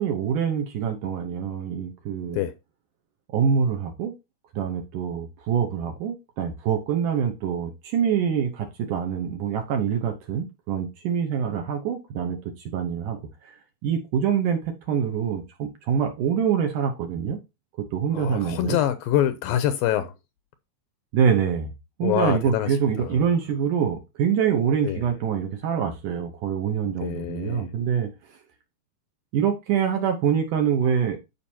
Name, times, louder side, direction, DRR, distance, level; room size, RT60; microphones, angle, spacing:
voice 1, 0.0-2.4 3.3-4.1 4.6-12.4 12.7-13.6 13.8-17.4 17.8-18.8 21.1-21.7 22.0-28.1 29.3-31.2, right 7 dB, 70° right, 2.1 m, -25 dB
voice 2, 2.2-2.5 18.1-20.1 22.0-23.3 24.8-25.1 26.8-27.7, left 11 dB, 80° left, 2.2 m, -26 dB
12.5 x 5.1 x 2.8 m
omnidirectional pair, 4.5 m